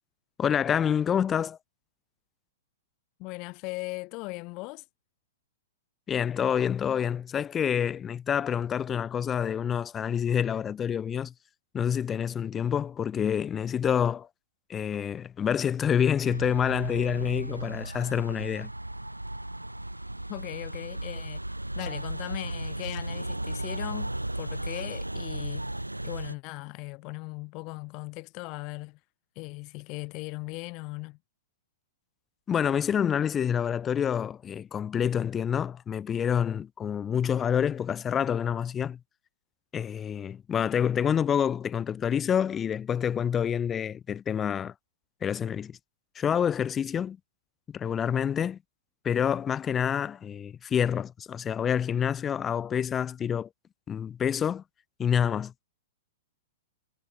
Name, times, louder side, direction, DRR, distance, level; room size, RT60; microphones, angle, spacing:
voice 1, 0.4-1.6 6.1-11.3 11.7-14.3 14.7-18.7 32.5-39.0 39.7-44.7 45.2-45.8 46.2-47.2 47.7-48.6 49.0-53.5 53.9-54.6 55.0-55.6, left 8 dB, 20° left, 0.3 m, -27 dB
voice 2, 3.2-4.8 20.3-21.4 21.8-25.7 26.0-29.0 29.4-31.2, left 27 dB, 35° left, 1.8 m, -38 dB
sound 1, 16.2-26.3, right 1 dB, 85° right, 0.4 m, -35 dB
figure-of-eight pair, 105°, 0 cm